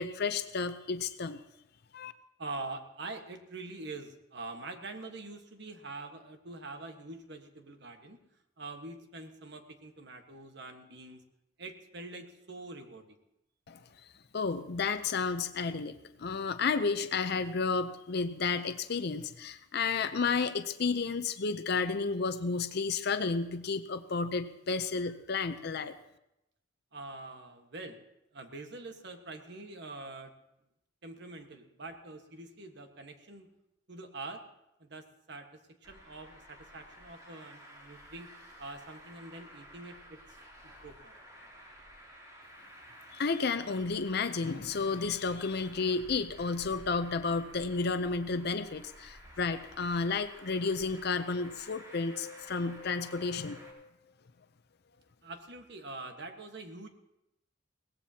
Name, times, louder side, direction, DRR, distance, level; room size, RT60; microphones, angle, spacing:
voice 1, 0.0-1.4 1.9-2.1 13.7-13.8 14.3-25.9 43.1-53.9, left 4 dB, 55° left, 10 dB, 0.6 m, -32 dB
voice 2, 2.4-8.2 8.6-11.2 11.6-13.2 26.9-28.0 28.3-30.3 31.0-33.5 33.9-34.4 34.8-38.3 38.6-40.4 40.6-41.2 49.2-49.4 55.2-56.9, right 2 dB, 60° right, 5 dB, 1.4 m, -45 dB
Traffic noise roadway noise, 35.8-53.7, equal, 20° right, 3.0 m, -53 dB
22.0 x 17.5 x 2.9 m, 0.86 s
head